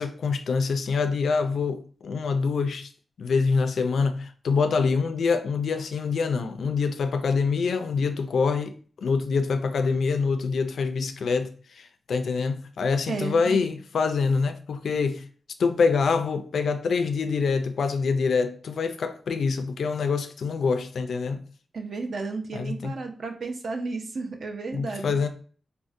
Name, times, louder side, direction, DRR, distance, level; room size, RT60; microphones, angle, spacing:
voice 1, 0.0-2.9 3.2-15.2 15.6-21.4 22.5-23.0 24.7-25.3, left 5 dB, 70° left, 0.3 m, -25 dB
voice 2, 13.1-13.6 21.7-25.2, right 3 dB, 55° right, 0.5 m, -33 dB
3.5 x 2.0 x 2.6 m
wide cardioid pair, 155°, 0 cm